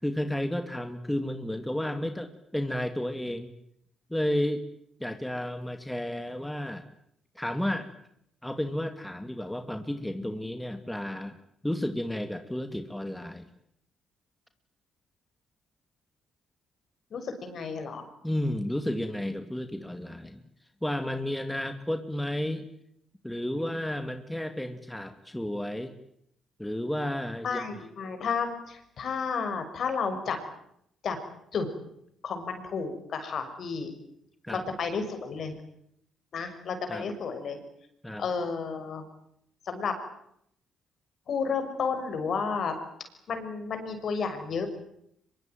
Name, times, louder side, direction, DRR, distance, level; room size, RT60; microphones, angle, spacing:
voice 1, 0.0-3.5 4.1-4.6 5.0-6.8 7.4-7.9 8.4-11.4 11.6-13.5 18.2-20.4 20.8-22.7 23.2-25.9 26.6-27.6 34.4-34.6 36.9-37.1 38.0-38.3, left 1 dB, 5° left, 7 dB, 2.5 m, -32 dB
voice 2, 17.1-18.1 18.9-19.0 27.4-30.4 31.0-31.2 31.5-31.7 32.2-33.9 34.5-35.5 36.3-37.6 38.2-39.0 39.7-39.9 41.3-42.7 43.3-44.7, left 5 dB, 60° left, 8 dB, 6.2 m, -32 dB
24.5 x 22.5 x 9.4 m, 0.73 s
cardioid pair, 90°, 0 cm